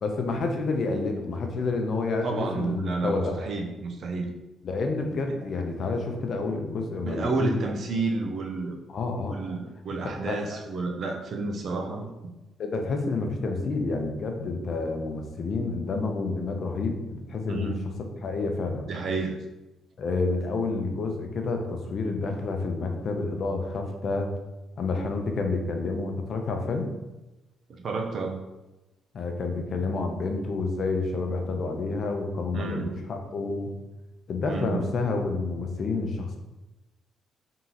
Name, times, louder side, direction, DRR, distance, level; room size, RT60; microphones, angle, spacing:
voice 1, 0.0-3.4 4.6-7.5 8.9-9.4 10.3-10.4 12.6-17.7 18.2-18.9 20.0-24.3 24.8-26.9 29.1-33.7 34.3-36.4, left 3 dB, 55° left, 3 dB, 0.7 m, -29 dB
voice 2, 2.2-4.3 5.3-5.4 7.0-8.8 9.3-12.3 17.5-17.8 18.9-19.4 27.8-28.4 32.5-32.9 34.5-34.9, right 3 dB, 55° right, 3 dB, 0.7 m, -30 dB
3.7 x 2.9 x 3.9 m, 1.0 s
cardioid pair, 90°, 0 cm